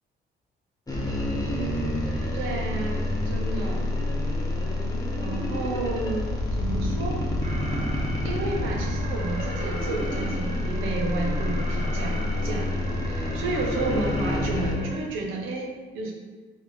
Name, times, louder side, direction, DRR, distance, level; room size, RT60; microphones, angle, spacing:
sound 1, 0.9-14.8, left 1 dB, 20° left, 0.9 m, -28 dB
voice 1, 1.5-2.0 2.3-3.9 5.2-7.2 8.2-12.8 13.0-16.1, right 3 dB, 85° right, 0 dB, 0.9 m, -31 dB
Alarm, 7.4-15.0, right 1 dB, 35° right, 0.8 m, -40 dB
3.6 x 3.6 x 3.6 m, 1.3 s
cardioid pair, 90°, 20 cm